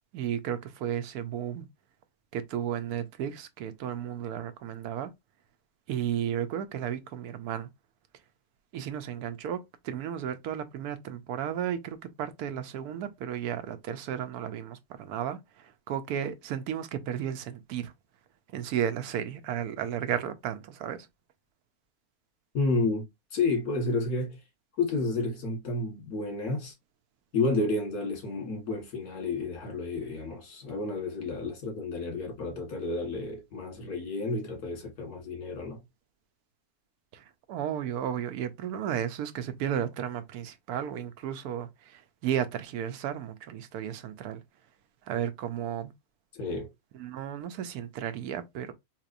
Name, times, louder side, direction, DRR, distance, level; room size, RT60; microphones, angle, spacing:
voice 1, 0.1-1.7 2.3-5.1 5.9-7.7 8.7-17.9 18.5-21.1 37.1-44.4 45.1-45.9 46.9-48.7, right 9 dB, 85° right, 1.1 m, -33 dB
voice 2, 22.5-23.1 23.3-24.4 24.8-26.7 27.3-35.8 46.3-46.7, left 3 dB, 75° left, 1.9 m, -31 dB
3.9 x 2.9 x 2.5 m
omnidirectional pair, 1.6 m